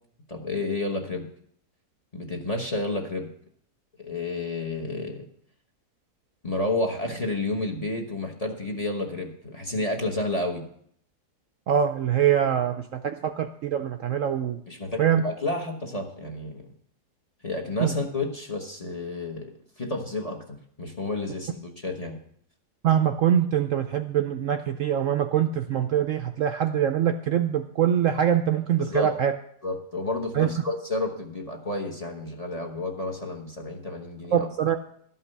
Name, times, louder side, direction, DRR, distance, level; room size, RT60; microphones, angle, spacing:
voice 1, 0.3-1.2 2.1-3.3 4.0-5.3 6.4-10.6 14.7-16.7 17.4-19.5 19.8-22.2 28.8-29.1 29.6-34.5, left 2 dB, 25° left, 2 dB, 1.2 m, -30 dB
voice 2, 11.7-12.7 13.0-14.6 15.0-15.2 17.8-17.9 22.8-29.3 30.3-30.5 34.3-34.8, right 9 dB, 65° right, 6 dB, 0.8 m, -23 dB
12.5 x 5.6 x 6.6 m, 0.66 s
omnidirectional pair, 1.7 m